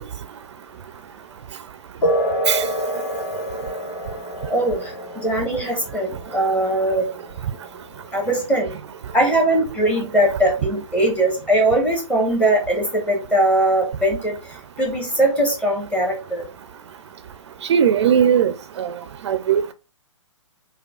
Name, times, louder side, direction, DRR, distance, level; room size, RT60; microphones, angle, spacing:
sound 1, 2.0-10.0, equal, 45° left, 1.6 m, -28 dB
voice 1, 4.5-7.1 8.1-8.7 9.1-14.3 14.8-16.4, right 1 dB, 10° left, 1.0 m, -20 dB
voice 2, 17.7-18.9 19.3-19.6, right 8 dB, 60° right, 0.4 m, -18 dB
5.1 x 2.2 x 2.3 m
hypercardioid pair, 135°, 17 cm